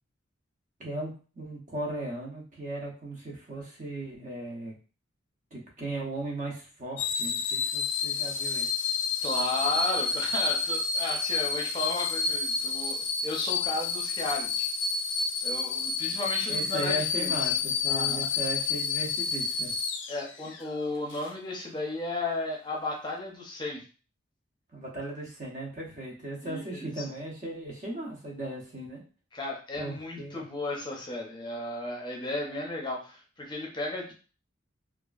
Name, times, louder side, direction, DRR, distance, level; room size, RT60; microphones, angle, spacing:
voice 1, 0.8-4.7 5.5-8.7 16.5-19.7 24.7-29.0 29.8-30.4, right 2 dB, 40° right, -1 dB, 0.7 m, -37 dB
sound 1, 7.0-20.6 21.1-21.3, left 5 dB, 60° left, 0.3 m, -29 dB
voice 2, 9.2-14.7 15.4-17.6 17.9-18.3 20.1-23.8 26.4-27.1 29.3-34.1, left 2 dB, 25° left, -1 dB, 0.6 m, -34 dB
2.8 x 2.4 x 2.4 m, 0.37 s
head